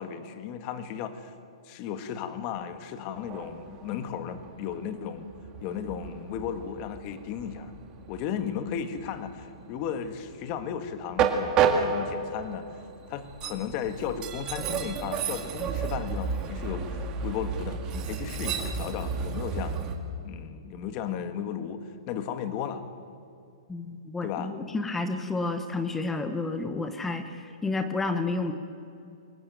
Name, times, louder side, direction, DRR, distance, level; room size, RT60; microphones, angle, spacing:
voice 1, 0.0-1.3 1.6-5.3 5.6-7.7 8.1-12.7 13.1-19.9 20.2-22.8 24.2-24.5, left 8 dB, 30° left, 10 dB, 1.6 m, -35 dB
Train, 3.2-19.9, right 6 dB, 20° right, 2.0 m, -32 dB
voice 2, 23.7-28.5, left 3 dB, 5° left, 8 dB, 0.9 m, -30 dB
23.0 x 19.0 x 9.2 m, 2.5 s
hypercardioid pair, 165°, 3 cm